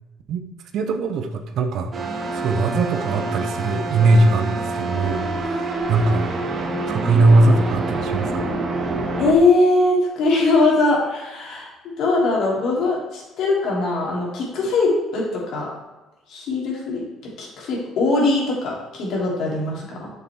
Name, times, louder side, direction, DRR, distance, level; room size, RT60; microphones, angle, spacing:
voice 1, 0.7-1.9 2.3-6.3 6.9-8.5, right 2 dB, 65° right, 6 dB, 0.9 m, -20 dB
sound 1, 1.9-9.3, right 2 dB, 40° right, 1.4 m, -27 dB
voice 2, 9.2-11.7 12.0-15.7 16.3-17.1 17.4-20.1, left 2 dB, 65° left, -4 dB, 3.1 m, -21 dB
8.5 x 6.6 x 3.6 m, 1.1 s
cardioid pair, 100°, 0 cm